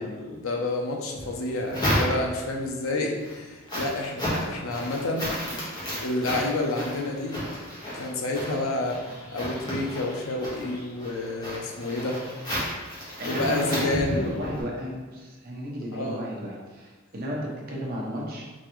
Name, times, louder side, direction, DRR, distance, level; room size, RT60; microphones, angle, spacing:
voice 1, 0.0-5.3 6.0-7.4 7.9-9.0 9.3-12.2 13.2-14.3 15.9-16.2, left 2 dB, 85° left, 1 dB, 0.7 m, -29 dB
sound 1, 1.1-2.6 3.0-14.6, equal, 20° left, 1.2 m, -32 dB
voice 2, 13.2-18.4, equal, 50° right, -3 dB, 0.9 m, -33 dB
4.1 x 3.3 x 3.1 m, 1.3 s
head